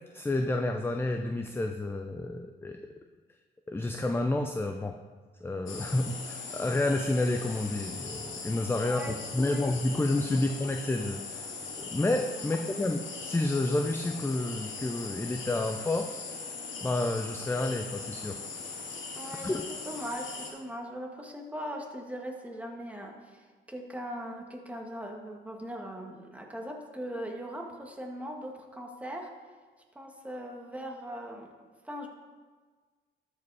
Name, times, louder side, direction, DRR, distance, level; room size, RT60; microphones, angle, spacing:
voice 1, 0.1-2.8 3.7-5.0 5.4-16.1 16.8-18.4 19.4-19.6, left 2 dB, 10° left, 5 dB, 0.5 m, -30 dB
sound 1, 5.7-20.5, left 4 dB, 80° left, 2.0 m, -40 dB
voice 2, 8.8-9.7 10.3-10.6 12.4-12.8 19.2-29.3 29.9-31.5 31.8-32.1, equal, 5° right, 1 dB, 1.6 m, -40 dB
12.5 x 5.1 x 4.8 m, 1.4 s
cardioid pair, 90°, 20 cm